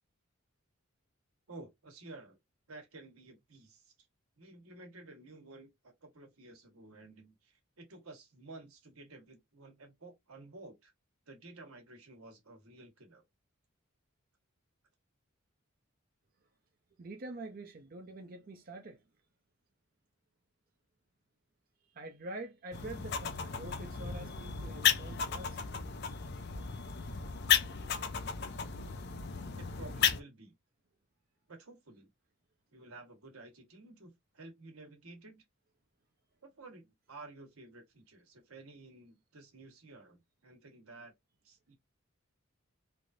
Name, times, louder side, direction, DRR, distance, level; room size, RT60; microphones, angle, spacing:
voice 1, 1.5-2.4 2.7-4.1 4.4-10.9 11.3-13.2 29.6-30.5 31.5-32.1 32.7-35.4 36.4-41.1 41.4-41.7, right 2 dB, 90° right, 1.3 m, -52 dB
voice 2, 17.0-19.0 21.9-25.6, right 2 dB, 40° right, 0.5 m, -46 dB
sound 1, 22.7-30.2, left 8 dB, 50° left, 0.5 m, -34 dB
3.2 x 2.5 x 2.6 m
head